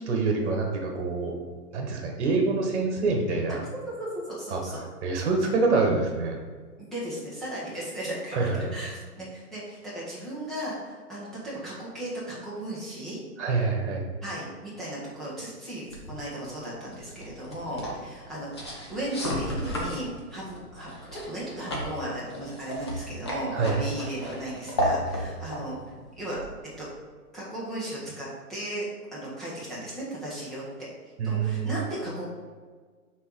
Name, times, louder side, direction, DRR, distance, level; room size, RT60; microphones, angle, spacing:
voice 1, 0.0-1.4 1.7-3.6 4.5-4.6 5.0-6.4 8.3-8.8 13.4-14.1 23.5-23.8 31.2-31.7, right 3 dB, 45° right, 2 dB, 1.6 m, -26 dB
voice 2, 4.0-4.8 6.8-13.2 14.2-25.8 26.2-26.4 26.8-26.9 27.3-28.9 29.1-30.9 31.2-32.3, right 1 dB, ahead, -9 dB, 1.0 m, -36 dB
sound 1, 15.9-27.0, equal, 20° left, 0.5 m, -34 dB
5.5 x 4.1 x 4.7 m, 1.5 s
hypercardioid pair, 150°, 46 cm